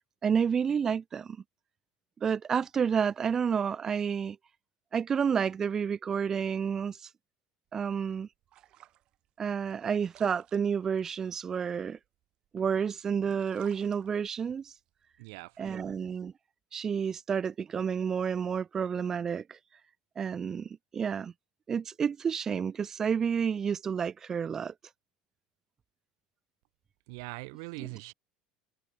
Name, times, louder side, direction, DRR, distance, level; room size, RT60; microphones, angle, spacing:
voice 1, 0.2-1.4 2.2-4.4 4.9-7.0 7.7-8.3 9.4-12.0 12.5-14.7 15.6-16.3 16.7-19.6 20.2-21.3 21.7-24.7 27.8-27.9, right 7 dB, 20° right, 0.8 m, -30 dB
sound 1, 7.7-12.8 13.1-15.6, right 14 dB, 40° right, 6.5 m, -60 dB
voice 2, 15.2-15.9 27.1-28.1, right 30 dB, 75° right, 1.2 m, -42 dB
cardioid pair, 170°, 2 cm